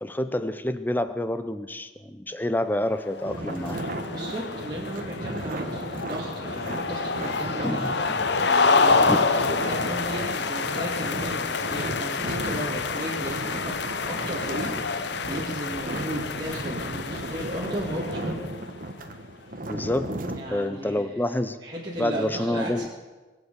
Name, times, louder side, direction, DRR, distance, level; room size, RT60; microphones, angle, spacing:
voice 1, 0.0-3.8 7.6-7.9 8.2-8.3 9.1-9.2 19.7-20.1 20.5-21.6 22.0-22.9, left 1 dB, 10° left, 11 dB, 0.7 m, -28 dB
sound 1, 3.0-18.7, left 4 dB, 60° left, 0.8 m, -28 dB
sound 2, 3.2-20.4, right 1 dB, 45° right, 1.3 m, -35 dB
voice 2, 4.1-7.8 8.5-13.8 14.1-18.4 20.4-21.1 21.6-22.9, right 1 dB, 20° right, -6 dB, 2.3 m, -35 dB
22.5 x 8.2 x 6.8 m, 1.3 s
head